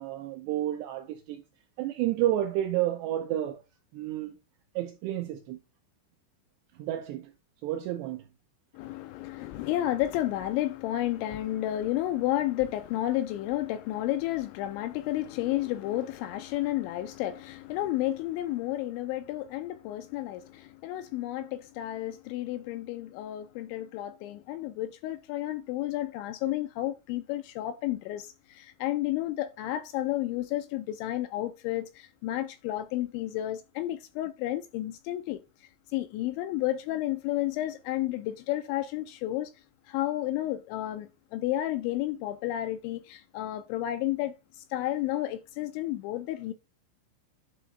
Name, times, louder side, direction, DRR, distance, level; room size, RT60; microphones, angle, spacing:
voice 1, 0.0-1.4 1.8-3.6 3.9-4.3 4.8-5.6 6.8-7.3 7.6-8.2, right 13 dB, 80° right, 2.5 m, -30 dB
voice 2, 8.7-39.5 39.9-46.5, left 14 dB, 80° left, 2.7 m, -31 dB
11.0 x 3.8 x 3.3 m
omnidirectional pair, 5.7 m